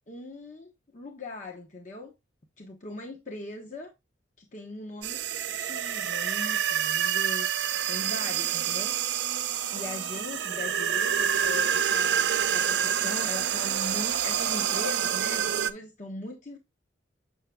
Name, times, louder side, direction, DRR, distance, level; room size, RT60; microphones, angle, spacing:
voice 1, 0.1-2.1 2.6-3.9 4.4-5.2 5.5-9.0 9.7-16.6, left 2 dB, 40° left, 0.9 m, -40 dB
sound 1, 5.0-15.7, right 9 dB, 65° right, 0.6 m, -27 dB
7.9 x 6.3 x 2.2 m
head